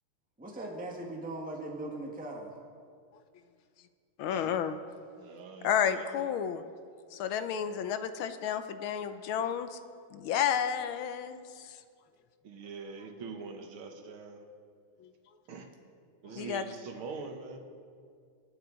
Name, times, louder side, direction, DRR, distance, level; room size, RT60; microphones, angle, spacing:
voice 1, 0.4-2.6, right 2 dB, 5° right, -1 dB, 1.3 m, -39 dB
voice 2, 4.2-4.8 5.6-6.6 7.1-9.8 10.1-11.8 15.0-15.1 16.4-16.6, left 8 dB, 75° left, 10 dB, 1.4 m, -31 dB
voice 3, 5.2-6.3 12.4-14.4 15.5-15.7 16.2-17.6, right 5 dB, 70° right, 4 dB, 2.1 m, -43 dB
25.5 x 9.3 x 4.0 m, 2.2 s
omnidirectional pair, 2.4 m